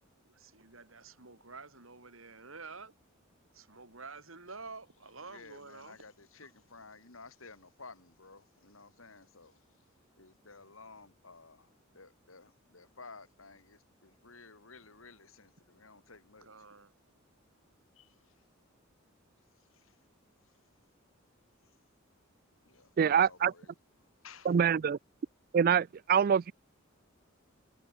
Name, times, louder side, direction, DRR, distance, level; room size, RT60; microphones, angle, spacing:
voice 1, 0.2-2.9 3.5-6.0 15.6-15.7 16.4-16.9, right 4 dB, 80° right, 6.4 m, -49 dB
voice 2, 5.3-9.6 10.2-16.5 17.9-18.3 19.7-19.9 22.6-23.7 24.2-24.6, left 4 dB, 85° left, 4.7 m, -54 dB
voice 3, 23.0-23.5 24.5-25.0 25.5-26.5, right 7 dB, 45° right, 0.3 m, -25 dB
head